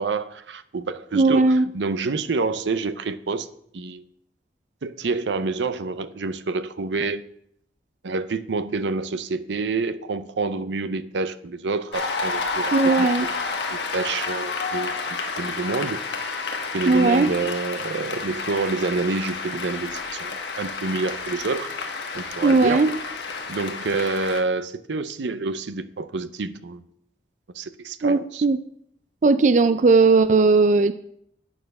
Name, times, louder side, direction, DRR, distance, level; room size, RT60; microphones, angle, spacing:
voice 1, 0.0-3.5 3.7-4.0 4.8-7.2 8.0-13.3 13.7-16.4 16.7-21.7 22.1-22.8 23.5-26.8 27.5-28.4, right 3 dB, 90° right, 13 dB, 0.6 m, -28 dB
voice 2, 1.1-1.7 12.7-13.3 16.9-17.3 22.4-22.9 28.0-28.6 29.2-30.9, right 3 dB, 45° right, 13 dB, 0.4 m, -17 dB
Cheering / Applause, 11.9-24.4, left 4 dB, 80° left, 1.3 m, -30 dB
8.8 x 6.8 x 5.4 m, 0.69 s
head